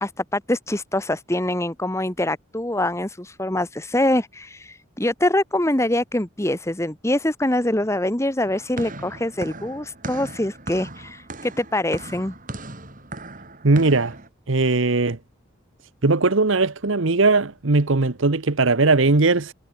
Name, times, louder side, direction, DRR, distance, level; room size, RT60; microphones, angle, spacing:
voice 1, 0.0-12.3, left 1 dB, 15° left, 1.2 m, -24 dB
sound 1, 8.4-14.3, right 2 dB, 40° right, 5.0 m, -37 dB
voice 2, 13.6-14.1 14.5-15.2 16.0-19.5, right 3 dB, 75° right, 1.1 m, -19 dB
head